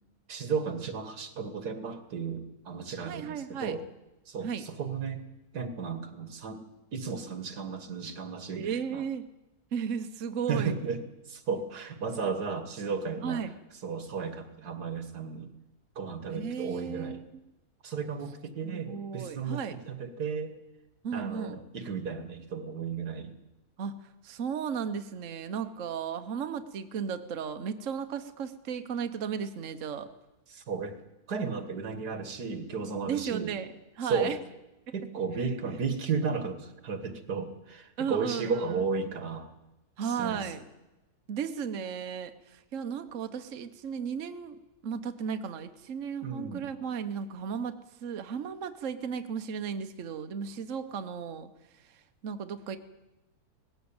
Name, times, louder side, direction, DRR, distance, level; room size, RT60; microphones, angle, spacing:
voice 1, 0.3-3.8 4.3-5.2 5.5-6.6 6.9-9.0 10.5-11.0 11.3-13.4 13.8-15.5 16.0-17.2 17.8-20.5 21.1-23.3 30.5-31.0 31.3-33.5 34.0-34.4 34.9-39.5 40.0-40.5 46.2-46.7, right 5 dB, 85° right, 9 dB, 2.2 m, -34 dB
voice 2, 3.1-3.8 4.4-4.7 8.5-9.3 9.7-10.7 13.2-13.6 16.3-17.2 18.6-19.8 21.0-21.6 23.8-24.0 24.2-30.1 33.1-34.4 35.4-35.5 38.0-38.8 40.0-40.6 41.3-52.8, right 7 dB, 55° right, 8 dB, 1.3 m, -35 dB
19.0 x 15.5 x 8.8 m, 1.0 s
omnidirectional pair, 1.7 m